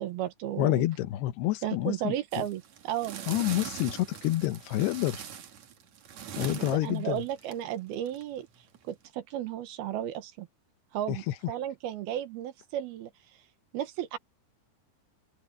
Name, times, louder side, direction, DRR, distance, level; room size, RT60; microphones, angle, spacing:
voice 1, 0.0-0.9 1.6-3.2 6.5-8.5 8.8-10.5 10.9-13.1 13.7-14.2, right 11 dB, 75° right, 3.0 m, -34 dB
voice 2, 0.6-2.4 3.3-5.2 6.4-7.2 11.1-11.3, left 16 dB, 90° left, 3.1 m, -28 dB
sound 1, 2.3-9.1, right 9 dB, 55° right, 2.5 m, -42 dB
open air
omnidirectional pair, 4.6 m